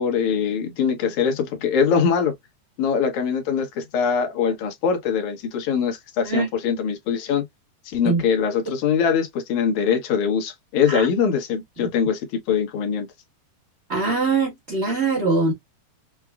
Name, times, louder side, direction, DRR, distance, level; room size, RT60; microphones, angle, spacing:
voice 1, 0.0-2.3 2.8-7.5 7.9-13.1, left 7 dB, 70° left, 2.2 m, -22 dB
voice 2, 13.9-15.5, right 3 dB, 80° right, 0.6 m, -22 dB
6.0 x 2.1 x 2.3 m
omnidirectional pair, 3.8 m